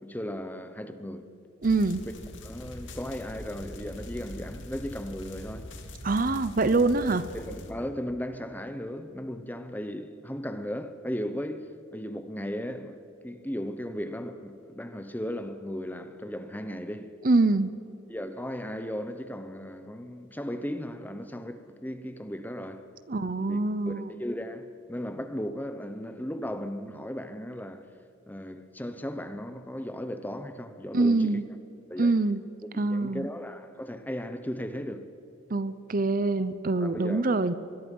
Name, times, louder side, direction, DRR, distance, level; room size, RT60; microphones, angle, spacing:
voice 1, 0.0-1.3 2.4-5.7 7.3-13.0 13.2-17.1 18.1-22.9 23.5-23.6 23.9-27.8 28.3-31.4 31.9-32.2 32.8-35.1 36.8-37.3, equal, 10° left, 1.0 m, -36 dB
sound 1, 1.6-7.7, left 1 dB, 70° left, 2.4 m, -43 dB
voice 2, 1.6-2.1 6.0-7.2 17.2-17.7 23.1-24.1 30.9-31.5 32.0-32.4 32.8-33.3 35.5-37.5, right 3 dB, 45° right, 0.7 m, -24 dB
24.0 x 21.5 x 5.5 m
head